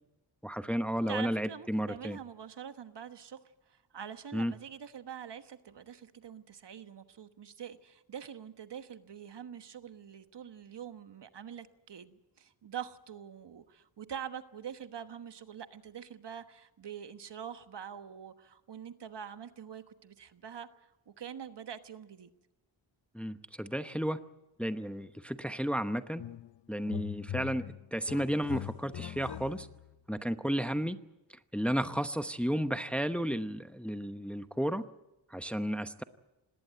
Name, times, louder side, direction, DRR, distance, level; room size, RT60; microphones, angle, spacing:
voice 1, 0.4-2.2 4.3-4.5 23.1-24.2 24.6-26.2 26.7-29.7 30.1-31.0 31.3-34.9 35.3-36.0, equal, 5° left, 10 dB, 0.9 m, -33 dB
voice 2, 1.1-3.4 3.7-22.3, right 8 dB, 60° right, 10 dB, 1.3 m, -45 dB
sound 1, 26.2-26.6 26.8-29.9, left 13 dB, 60° left, 0.7 m, -42 dB
19.5 x 18.0 x 9.2 m, 0.96 s
cardioid pair, 65°, 47 cm